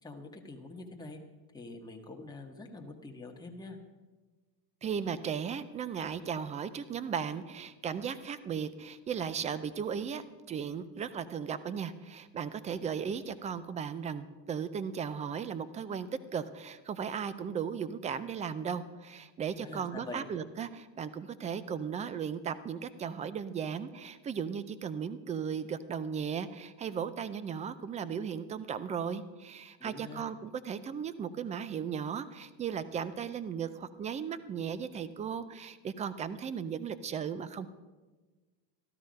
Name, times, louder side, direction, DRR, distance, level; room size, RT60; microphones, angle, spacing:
voice 1, 0.0-1.2 1.5-3.8 19.6-20.3 29.8-30.2, left 2 dB, 10° left, 1 dB, 1.6 m, -45 dB
voice 2, 4.8-37.7, right 7 dB, 15° right, 15 dB, 0.3 m, -36 dB
13.5 x 12.5 x 5.2 m, 1.3 s
supercardioid pair, 120°, 50 cm